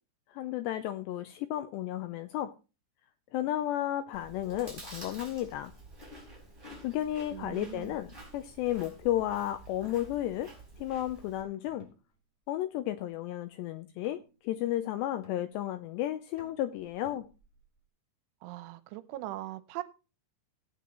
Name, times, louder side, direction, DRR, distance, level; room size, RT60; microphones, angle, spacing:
voice 1, 0.3-2.5 3.3-5.7 6.8-10.5 10.8-11.9 12.5-17.3, left 13 dB, 80° left, 9 dB, 2.5 m, -33 dB
Chewing mastication, 4.1-11.4, right 1 dB, 10° right, 3.6 m, -50 dB
voice 2, 7.3-8.0 18.4-19.8, right 16 dB, 85° right, 13 dB, 3.1 m, -40 dB
sound 1, 8.2-8.5 9.8-10.9 11.6-12.5 12.8-13.2 14.0-14.5 15.2-15.9 16.4-17.8, equal, 10° left, 2.7 m, -58 dB
18.0 x 8.7 x 3.0 m, 0.32 s
omnidirectional pair, 5.5 m